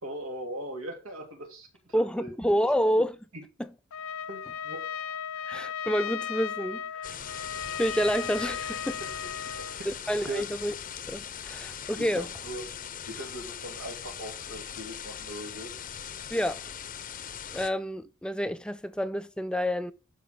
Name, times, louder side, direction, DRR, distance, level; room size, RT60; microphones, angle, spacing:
voice 1, 0.0-2.3 3.3-3.4 4.3-4.8 9.0-9.1 9.6-9.9 10.3-10.5 12.0-12.7 13.1-15.7, right 1 dB, 85° right, 3.1 m, -40 dB
voice 2, 1.9-3.2 3.6-3.7 5.5-7.1 7.8-9.0 9.9-10.7 11.1-12.3 16.3-16.6 17.1-17.2 17.5-19.9, equal, 5° left, 0.4 m, -28 dB
Trumpet, 3.9-9.8, left 8 dB, 85° left, 0.6 m, -36 dB
sound 1, 7.0-17.7, left 8 dB, 40° left, 0.7 m, -40 dB
11.5 x 5.2 x 3.9 m
head